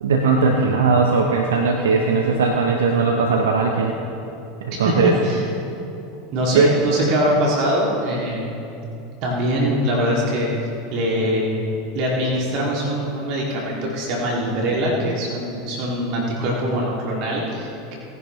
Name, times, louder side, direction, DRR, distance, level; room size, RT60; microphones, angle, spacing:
voice 1, 0.0-3.9 4.8-5.2 6.5-6.7, right 4 dB, 75° right, 2 dB, 0.8 m, -18 dB
voice 2, 4.8-5.4 6.3-8.4 9.2-10.5 10.9-11.5 11.9-18.0, equal, 55° right, -3 dB, 2.4 m, -22 dB
18.0 x 11.0 x 3.1 m, 2.8 s
hypercardioid pair, 85°, 0 cm